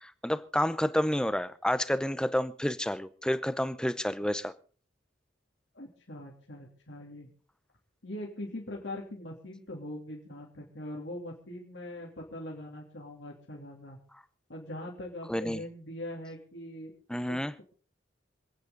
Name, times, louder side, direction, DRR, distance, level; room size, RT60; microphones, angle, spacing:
voice 1, 0.0-4.5 15.3-15.6 17.1-17.5, equal, 5° left, 13 dB, 0.7 m, -29 dB
voice 2, 5.7-7.3 8.0-14.0 14.5-16.9 17.3-17.6, left 1 dB, 70° left, -1 dB, 3.0 m, -42 dB
27.0 x 9.4 x 3.9 m, 0.41 s
head